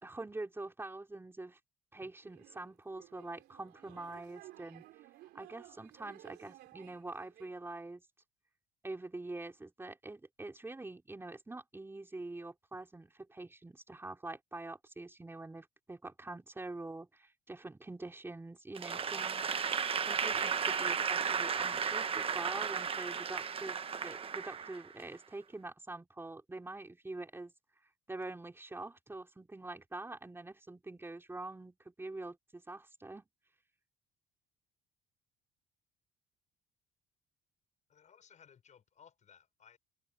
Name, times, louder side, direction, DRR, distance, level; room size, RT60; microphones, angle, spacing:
voice 1, 0.0-1.6 1.9-4.9 5.3-8.0 8.8-19.5 20.0-27.5 28.1-33.2, right 2 dB, 15° right, 3.4 m, -45 dB
sound 1, 2.2-7.6, right 16 dB, 85° right, 3.5 m, -56 dB
Applause / Crowd, 18.8-25.1, right 6 dB, 35° right, 1.2 m, -34 dB
voice 2, 18.9-19.2 37.9-39.8, left 7 dB, 45° left, 6.7 m, -61 dB
cardioid pair, 110°, 17 cm